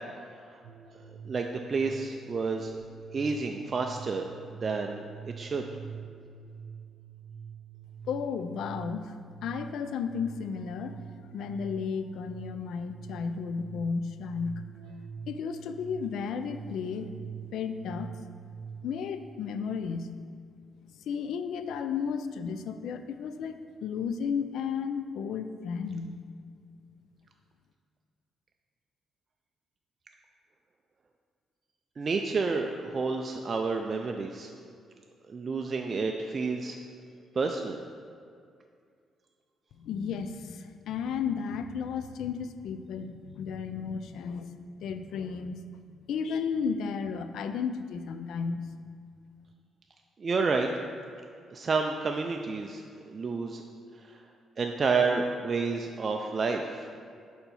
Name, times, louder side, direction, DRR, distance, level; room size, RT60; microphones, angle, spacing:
sound 1, 0.6-18.9, right 7 dB, 90° right, 0.6 m, -45 dB
voice 1, 1.2-2.8 3.1-4.3 4.6-5.6 32.0-34.5 35.3-36.8 37.4-37.8 50.2-50.7 51.5-53.6 54.0-54.2 54.6-56.9, right 4 dB, 40° right, 3 dB, 0.3 m, -30 dB
voice 2, 8.1-9.1 9.4-11.0 11.3-14.6 15.3-17.2 17.5-18.1 18.8-20.1 21.1-26.2 39.8-44.5 44.8-45.6 46.1-48.6, left 6 dB, 75° left, 10 dB, 0.3 m, -33 dB
4.5 x 4.2 x 5.3 m, 2.3 s
cardioid pair, 90°, 0 cm